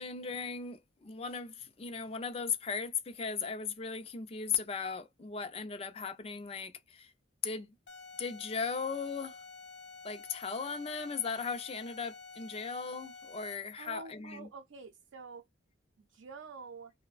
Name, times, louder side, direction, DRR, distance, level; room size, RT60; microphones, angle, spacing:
voice 1, 0.0-7.1 7.4-7.7 8.2-9.4 10.0-14.5, left 5 dB, 30° left, 0.4 m, -37 dB
sound 1, 7.9-13.8, left 4 dB, 65° left, 0.7 m, -50 dB
voice 2, 13.8-15.4 16.0-16.9, right 4 dB, 80° right, 0.5 m, -47 dB
3.0 x 2.1 x 2.3 m
head